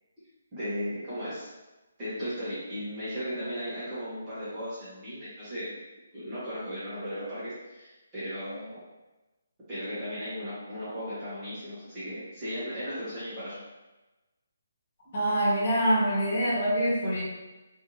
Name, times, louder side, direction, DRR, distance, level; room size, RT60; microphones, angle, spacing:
voice 1, 0.5-1.5 2.0-5.8 6.1-8.8 9.7-13.6, equal, 15° right, -13 dB, 1.0 m, -36 dB
voice 2, 15.1-17.2, right 1 dB, 35° left, -8 dB, 1.2 m, -25 dB
3.5 x 2.5 x 2.7 m, 1.1 s
hypercardioid pair, 175°, 0 cm